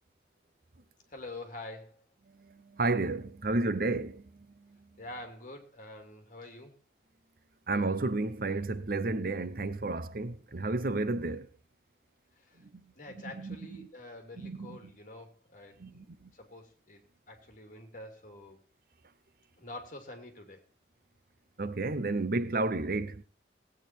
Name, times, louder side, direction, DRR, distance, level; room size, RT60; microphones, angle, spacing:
voice 1, 1.1-2.1 5.0-6.7 12.3-12.7 13.0-17.0 17.3-18.6 19.6-20.6, left 2 dB, 45° left, 2.6 m, -47 dB
voice 2, 2.3-4.9 7.7-11.5 12.6-13.6 14.4-14.8 15.8-16.3 21.6-23.2, right 2 dB, 55° right, 0.8 m, -32 dB
17.0 x 8.8 x 4.4 m
head